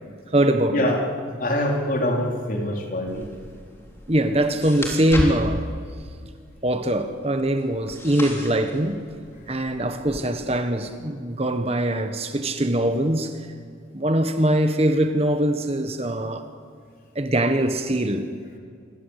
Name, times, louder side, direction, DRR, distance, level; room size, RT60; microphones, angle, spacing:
voice 1, 0.3-0.8 4.1-5.7 6.6-9.0 9.5-13.5 13.9-16.4 17.1-18.3, right 1 dB, 30° right, 1.4 m, -22 dB
voice 2, 1.4-3.3, left 1 dB, 45° left, 4.1 m, -24 dB
sound 1, 3.1-10.2, equal, 15° left, 3.7 m, -35 dB
27.5 x 22.0 x 8.3 m
head